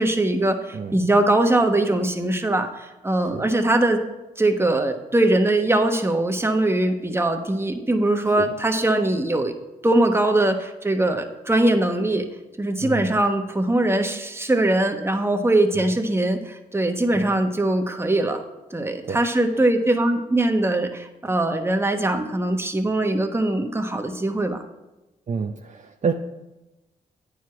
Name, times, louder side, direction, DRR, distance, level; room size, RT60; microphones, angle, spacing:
voice 1, 0.0-4.0 4.4-9.5 9.8-12.3 12.6-18.4 18.7-24.6, right 1 dB, 15° right, 5 dB, 1.1 m, -21 dB
voice 2, 25.3-26.1, right 5 dB, 45° right, 5 dB, 0.6 m, -28 dB
8.9 x 4.9 x 5.9 m, 1.0 s
supercardioid pair, 55°, 17 cm